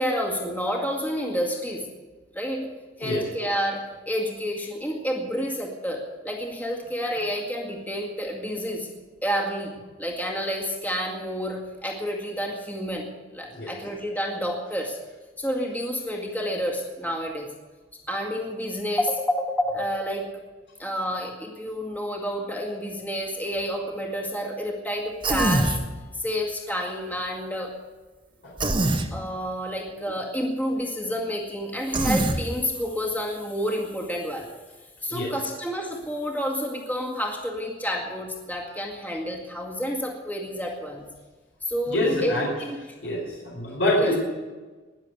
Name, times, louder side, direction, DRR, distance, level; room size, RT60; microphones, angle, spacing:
voice 1, 0.0-1.9 2.3-2.7 3.0-8.9 9.2-15.0 15.4-17.5 18.1-20.3 20.8-25.8 26.1-27.8 29.1-34.5 35.0-41.1 41.6-42.8 44.0-44.2, equal, 10° left, -1 dB, 2.1 m, -29 dB
Human voice, 25.2-25.8 28.6-29.1 31.9-32.4, right 2 dB, 25° right, 1.3 m, -23 dB
voice 2, 41.9-42.5 43.0-44.2, left 1 dB, 70° left, -3 dB, 4.6 m, -25 dB
21.0 x 7.4 x 8.3 m, 1.3 s
head